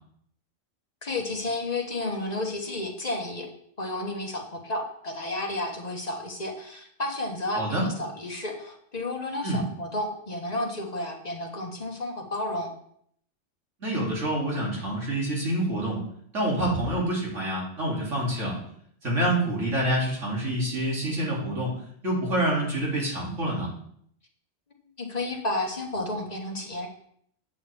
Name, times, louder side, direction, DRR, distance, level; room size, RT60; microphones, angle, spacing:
voice 1, 1.0-3.5 3.8-12.7 25.0-26.9, left 2 dB, 35° left, 1 dB, 1.4 m, -32 dB
voice 2, 13.8-16.0 16.3-18.6 19.0-21.8 22.0-23.7, right 1 dB, 90° right, -5 dB, 3.2 m, -27 dB
8.6 x 8.3 x 3.5 m, 0.67 s
omnidirectional pair, 1.2 m